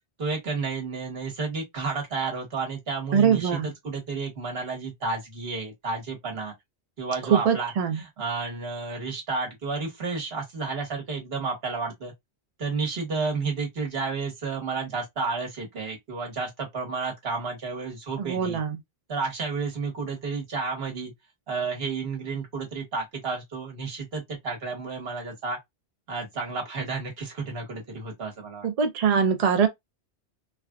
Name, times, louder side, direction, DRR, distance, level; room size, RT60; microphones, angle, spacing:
voice 1, 0.2-6.5 7.0-12.1 12.6-18.6 19.1-21.1 21.5-25.6 26.1-28.7, right 4 dB, 65° right, 1.4 m, -31 dB
voice 2, 3.1-3.7 7.3-8.0 18.2-18.8 28.6-29.7, right 7 dB, 50° right, 0.5 m, -22 dB
3.3 x 2.4 x 2.2 m
omnidirectional pair, 1.1 m